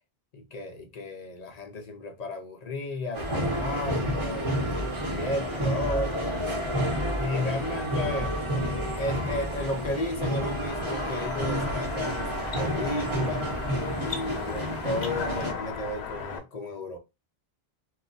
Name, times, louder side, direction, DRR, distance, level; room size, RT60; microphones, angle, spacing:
voice 1, 0.3-4.5 5.1-6.4 7.1-8.4 9.0-13.5 14.0-17.0, left 2 dB, 50° left, 0.5 m, -33 dB
sound 1, 3.1-15.5, equal, 30° right, 0.9 m, -30 dB
sound 2, 10.7-16.4, left 6 dB, 85° left, 0.9 m, -36 dB
2.3 x 2.1 x 3.8 m
omnidirectional pair, 1.1 m